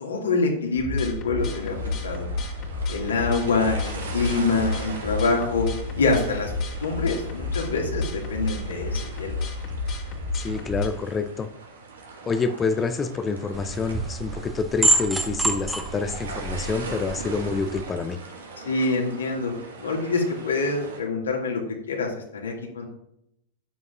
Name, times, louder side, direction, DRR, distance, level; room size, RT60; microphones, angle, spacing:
voice 1, 0.0-2.3 2.9-5.7 6.0-9.4 18.6-19.5 19.8-22.8, left 3 dB, 70° left, 0 dB, 2.2 m, -26 dB
sound 1, 0.8-10.9, left 3 dB, 35° left, 2.0 m, -31 dB
sound 2, 1.4-21.0, right 4 dB, 70° right, 1.9 m, -41 dB
voice 2, 10.3-11.5 12.3-18.2, left 4 dB, 20° left, 10 dB, 0.6 m, -27 dB
sound 3, 13.5-17.8, right 2 dB, 10° right, 1.3 m, -27 dB
12.5 x 9.4 x 2.5 m, 0.79 s
figure-of-eight pair, 90°, 0 cm